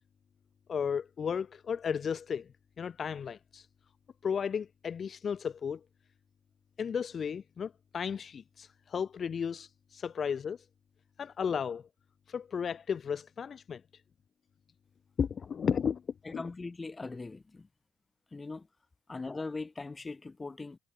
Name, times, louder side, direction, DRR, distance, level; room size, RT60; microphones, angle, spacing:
voice 1, 0.7-2.5 2.8-3.7 4.2-5.8 6.8-10.6 11.2-11.8 12.3-13.8 15.2-16.0 16.3-16.4, left 7 dB, 50° left, 3.7 m, -34 dB
voice 2, 16.2-17.7 18.3-18.7 19.1-20.8, left 3 dB, 25° left, 5.1 m, -40 dB
hypercardioid pair, 55°, 0 cm